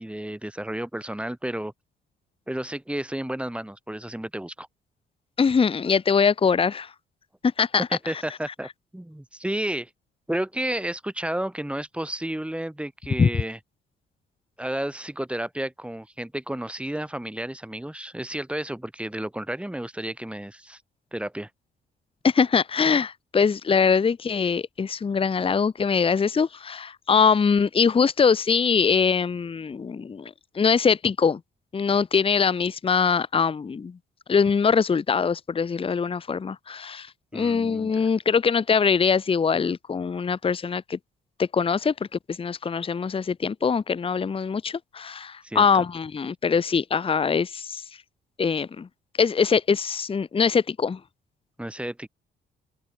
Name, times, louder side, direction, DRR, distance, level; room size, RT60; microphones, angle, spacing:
voice 1, 0.0-1.7 2.5-4.7 7.9-9.9 10.3-13.6 14.6-20.8 21.1-21.5 37.3-38.1 45.4-45.8 51.6-52.1, right 1 dB, 5° right, 6.4 m, -32 dB
voice 2, 5.4-6.9 7.6-7.9 13.2-13.3 22.2-31.4 31.7-34.0 34.3-37.1 37.3-41.0 41.4-47.8 48.4-48.9 49.2-51.0, left 6 dB, 25° left, 0.8 m, -23 dB
cardioid pair, 90°, 20 cm